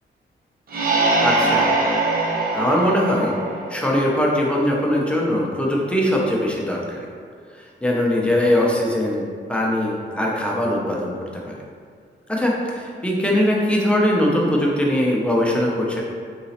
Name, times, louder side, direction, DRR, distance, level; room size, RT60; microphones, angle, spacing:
sound 1, 0.7-4.3, right 2 dB, 50° right, 0.6 m, -22 dB
voice 1, 1.2-1.7 2.5-3.4 3.7-7.1 7.6-9.2 9.5-11.5 12.3-16.0, left 1 dB, 5° left, -3 dB, 0.6 m, -21 dB
4.0 x 3.0 x 2.7 m, 2.1 s
wide cardioid pair, 110°, 20 cm